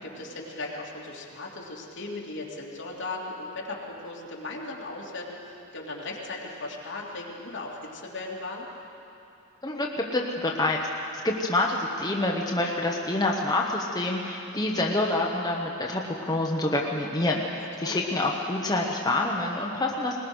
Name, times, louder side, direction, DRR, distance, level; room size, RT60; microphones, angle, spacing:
voice 1, 0.0-8.7 17.5-18.0, left 2 dB, 60° left, -3 dB, 3.1 m, -37 dB
voice 2, 9.6-10.8 11.2-20.2, left 2 dB, 20° left, -2 dB, 1.1 m, -27 dB
21.0 x 20.0 x 6.3 m, 2.9 s
head